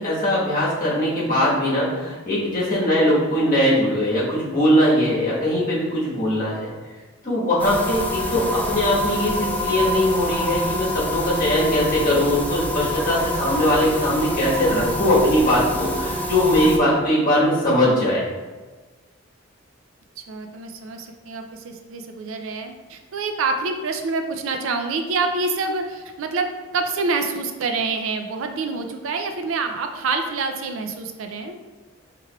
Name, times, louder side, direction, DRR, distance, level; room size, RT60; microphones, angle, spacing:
voice 1, 0.0-6.7 7.2-18.3, left 1 dB, 45° left, -7 dB, 1.3 m, -20 dB
sound 1, 7.6-16.8, equal, 10° left, 0.4 m, -26 dB
voice 2, 20.3-31.5, right 4 dB, 80° right, 5 dB, 0.4 m, -27 dB
4.6 x 3.3 x 2.3 m, 1.3 s
head